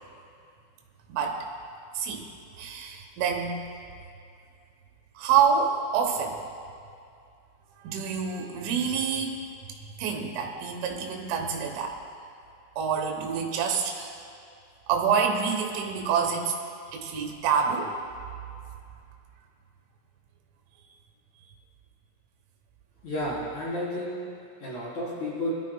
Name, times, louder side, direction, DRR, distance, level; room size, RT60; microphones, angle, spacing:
voice 1, 2.0-2.3 2.6-3.6 5.2-6.4 7.8-9.4 10.0-12.0 12.8-14.2 14.9-16.5 16.9-17.9, right 6 dB, 85° right, 2 dB, 3.7 m, -27 dB
voice 2, 23.0-24.3 24.6-25.5, left 1 dB, 40° left, -8 dB, 4.8 m, -31 dB
21.5 x 13.5 x 2.3 m, 2.4 s
omnidirectional pair, 5.4 m